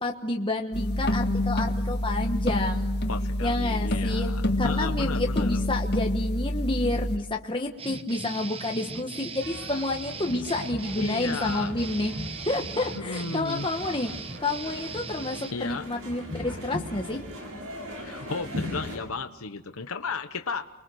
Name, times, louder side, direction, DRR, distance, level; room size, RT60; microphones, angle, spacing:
voice 1, 0.0-3.0 3.4-4.3 4.6-12.1 12.5-14.1 14.4-17.2, left 2 dB, 25° left, 2 dB, 1.2 m, -29 dB
sound 1, 0.7-7.2, left 1 dB, 50° left, 1.7 m, -27 dB
voice 2, 3.1-5.6 11.0-11.7 12.9-13.7 15.5-15.9 18.0-20.7, left 4 dB, 75° left, 7 dB, 1.0 m, -34 dB
sound 2, 7.8-15.5, right 4 dB, 25° right, 1.0 m, -39 dB
sound 3, 9.4-19.0, left 1 dB, 75° right, 7.2 m, -39 dB
29.5 x 22.5 x 6.4 m, 1.1 s
head